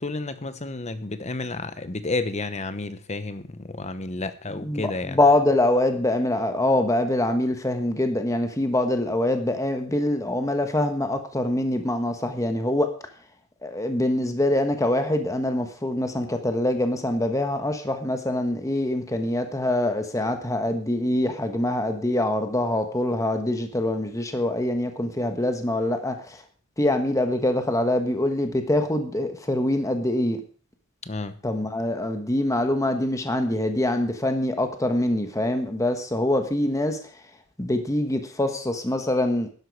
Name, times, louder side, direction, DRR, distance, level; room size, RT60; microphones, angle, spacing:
voice 1, 0.0-5.2 31.0-31.4, left 3 dB, 30° left, 1.0 m, -31 dB
voice 2, 4.5-12.9 13.6-26.4 26.8-30.4 31.4-37.0 37.6-39.5, left 1 dB, 15° left, 1.2 m, -24 dB
12.5 x 10.5 x 4.7 m
head